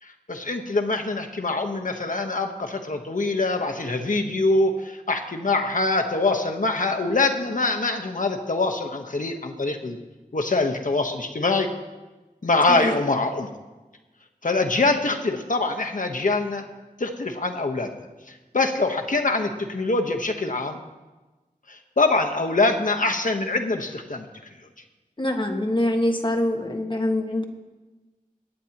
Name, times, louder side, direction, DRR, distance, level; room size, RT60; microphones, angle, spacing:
voice 1, 0.0-10.0 10.3-11.7 12.4-13.5 14.4-16.6 17.0-17.9 18.3-20.8 21.7-24.3, left 3 dB, 60° left, 4 dB, 1.1 m, -24 dB
voice 2, 25.2-27.4, left 1 dB, 35° left, 3 dB, 1.5 m, -24 dB
23.0 x 9.3 x 3.0 m, 1.2 s
wide cardioid pair, 60°, 15 cm